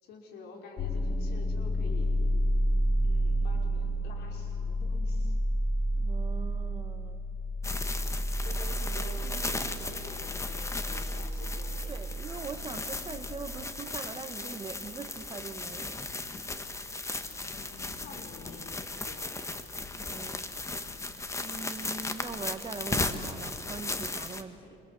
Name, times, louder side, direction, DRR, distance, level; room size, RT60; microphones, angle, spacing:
voice 1, 0.0-2.2 3.0-5.4 8.1-12.0 17.5-19.3 24.6-24.8, left 4 dB, 80° left, 1 dB, 5.5 m, -48 dB
sound 1, 0.8-13.5, equal, 45° left, 3.7 m, -30 dB
voice 2, 6.0-7.2 8.5-8.6 11.9-16.0 19.9-20.5 21.4-24.6, right 4 dB, 30° right, 8 dB, 1.7 m, -42 dB
sound 2, 7.6-24.4, left 2 dB, 15° left, 1.6 m, -36 dB
28.5 x 26.5 x 8.0 m, 2.8 s
cardioid pair, 110°, 17 cm